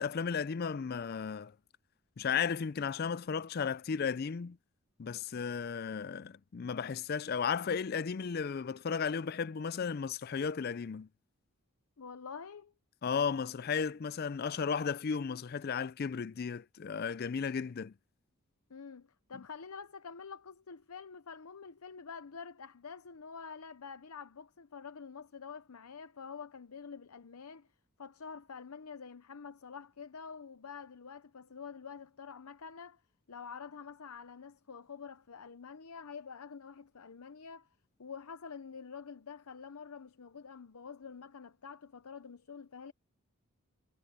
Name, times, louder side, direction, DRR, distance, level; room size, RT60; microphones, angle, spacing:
voice 1, 0.0-1.5 2.2-4.6 5.0-11.1 13.0-17.9, left 6 dB, 45° left, 0.4 m, -34 dB
voice 2, 12.0-12.7 18.7-27.7 28.0-33.0 33.3-37.7 38.0-42.9, left 6 dB, 85° left, 0.7 m, -47 dB
head